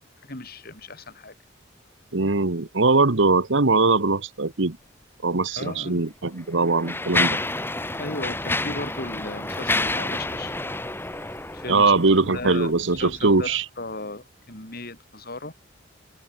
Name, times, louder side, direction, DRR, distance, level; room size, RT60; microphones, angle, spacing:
voice 1, 0.2-1.3 5.6-6.0 8.0-10.6 11.5-11.9 12.3-15.5, left 2 dB, 50° left, 4.4 m, -36 dB
voice 2, 2.1-4.8 5.2-7.4 11.7-13.6, right 3 dB, 65° right, 1.3 m, -21 dB
Mechanisms, 5.5-5.6 6.4-12.1, left 2 dB, 10° left, 3.1 m, -28 dB
sound 1, 8.3-13.6, equal, 5° right, 3.0 m, -47 dB
head